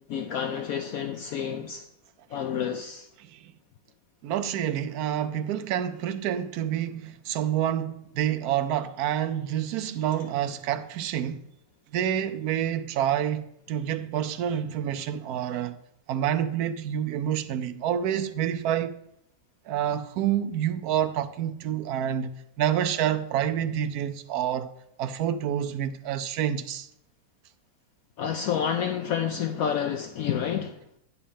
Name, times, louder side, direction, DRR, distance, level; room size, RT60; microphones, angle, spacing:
voice 1, 0.1-1.8 2.3-3.1 28.2-30.8, left 8 dB, 65° left, 1.0 m, -29 dB
voice 2, 4.2-11.4 11.9-15.8 16.1-19.0 19.7-24.7 25.0-26.9, right 10 dB, 70° right, 1.1 m, -28 dB
10.0 x 4.3 x 7.0 m
omnidirectional pair, 1.8 m